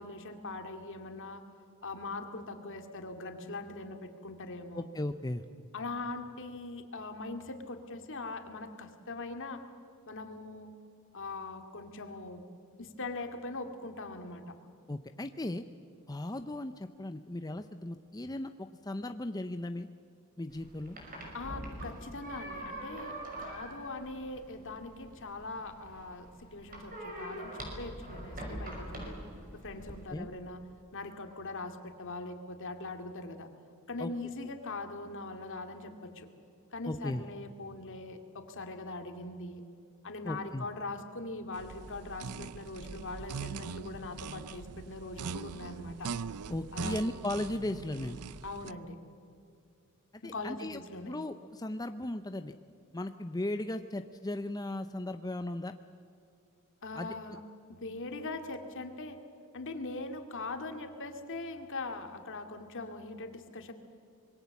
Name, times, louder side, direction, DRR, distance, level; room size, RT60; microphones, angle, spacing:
voice 1, 0.0-1.4 1.8-4.9 5.7-9.6 10.1-10.7 11.1-12.4 12.8-14.5 21.3-29.2 29.5-30.6 30.9-33.5 33.9-36.3 36.7-39.6 40.0-46.1 46.7-47.0 48.4-49.0 50.2-51.1 56.8-57.4 57.7-59.2 59.5-63.7, left 2 dB, 60° left, 6 dB, 2.3 m, -41 dB
voice 2, 4.7-5.4 14.9-15.6 16.1-19.9 20.4-21.0 30.1-30.3 34.0-34.1 36.9-37.2 40.2-40.7 46.5-48.2 50.2-52.5 52.9-55.7 56.9-57.1, left 1 dB, 15° left, 8 dB, 0.6 m, -36 dB
sound 1, 20.5-30.0, right 1 dB, 40° right, 6.1 m, -44 dB
sound 2, 41.5-48.7, right 5 dB, 90° right, 0.6 m, -41 dB
25.5 x 22.0 x 7.2 m, 2.7 s
head